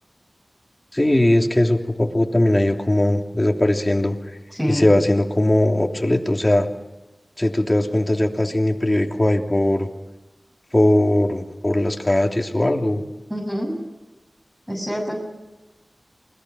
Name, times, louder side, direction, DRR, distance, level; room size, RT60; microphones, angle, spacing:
voice 1, 0.9-4.2 4.7-6.7 7.4-9.9 10.7-13.0, left 1 dB, 25° left, 2 dB, 3.1 m, -19 dB
voice 2, 4.5-4.9 13.3-13.7 14.7-15.2, equal, 10° right, -1 dB, 7.1 m, -25 dB
28.5 x 21.5 x 6.3 m, 1.0 s
wide cardioid pair, 50°, 0 cm